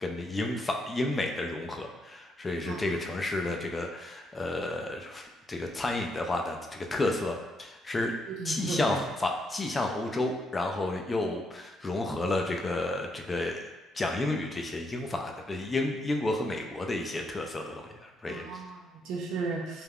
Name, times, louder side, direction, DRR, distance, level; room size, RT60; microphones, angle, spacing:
voice 1, 0.0-8.1 8.4-13.6 13.9-18.4, left 2 dB, 20° left, 3 dB, 0.3 m, -31 dB
voice 2, 8.3-9.0 18.3-19.8, right 4 dB, 70° right, 0 dB, 0.5 m, -35 dB
2.4 x 2.2 x 3.4 m, 1.1 s
cardioid pair, 125°, 0 cm